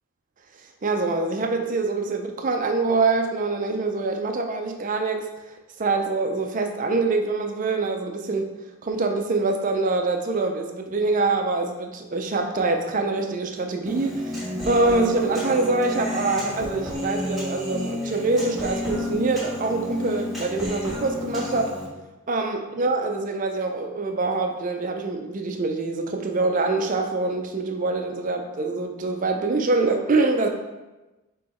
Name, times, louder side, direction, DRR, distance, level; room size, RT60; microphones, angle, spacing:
voice 1, 0.8-5.3 5.8-8.5 8.8-21.7 22.3-30.5, right 3 dB, 35° right, 4 dB, 0.4 m, -25 dB
Human voice, 13.9-21.9, left 1 dB, ahead, 1.5 m, -31 dB
5.5 x 3.0 x 3.0 m, 1.1 s
head